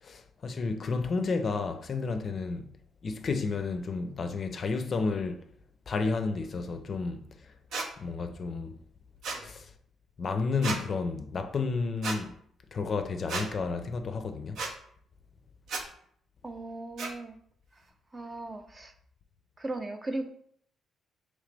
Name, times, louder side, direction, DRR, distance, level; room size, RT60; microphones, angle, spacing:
voice 1, 0.0-2.7 3.0-5.4 5.9-7.5 8.0-8.8 9.4-9.7 10.2-12.3 12.7-14.6, left 4 dB, 45° left, 0.4 m, -31 dB
sound 1, 7.7-7.9 9.2-9.4 10.6-10.8 12.0-12.2 13.3-13.5 14.6-14.7 15.7-15.8 17.0-17.1, right 3 dB, 70° right, 0.7 m, -33 dB
voice 2, 16.4-17.4 18.1-18.9 19.6-20.3, right 2 dB, 25° right, 0.5 m, -37 dB
3.8 x 3.2 x 3.3 m
cardioid pair, 90°, 0 cm